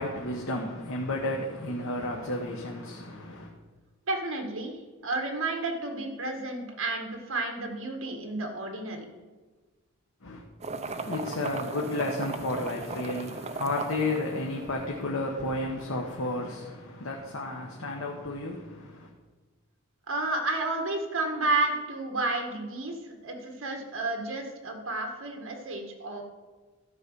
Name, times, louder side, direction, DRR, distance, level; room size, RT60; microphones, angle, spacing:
voice 1, 0.0-3.5 10.2-10.4 10.8-19.1, left 2 dB, 70° left, 1.1 m, -32 dB
voice 2, 4.1-9.0 20.1-26.2, right 2 dB, 65° right, 1.8 m, -31 dB
sound 1, 10.6-15.0, right 4 dB, 30° right, 0.5 m, -37 dB
12.5 x 5.0 x 6.7 m
head